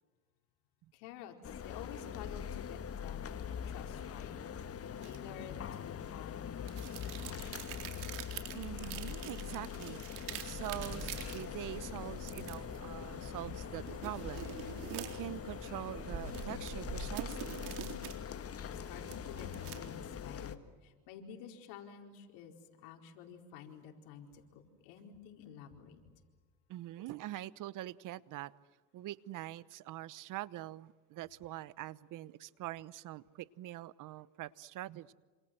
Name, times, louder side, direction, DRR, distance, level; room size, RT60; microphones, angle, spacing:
voice 1, 0.9-1.4 1.6-3.3 3.7-4.4 5.0-7.6 18.5-22.5 22.8-24.3 24.5-26.0, left 8 dB, 75° left, 4.7 m, -51 dB
sound 1, 1.4-20.6, left 8 dB, 35° left, 1.7 m, -43 dB
sound 2, 5.0-5.2 6.7-11.4 12.3-12.8 13.8-15.4 16.2-18.2 18.6-20.0, right 13 dB, 80° right, 4.0 m, -46 dB
voice 2, 8.5-10.0 10.4-17.7 26.7-28.5 28.9-35.1, right 15 dB, 55° right, 1.0 m, -44 dB
sound 3, 10.6-17.9, right 2 dB, 20° right, 6.9 m, -48 dB
28.0 x 27.0 x 7.8 m
supercardioid pair, 100°, 39 cm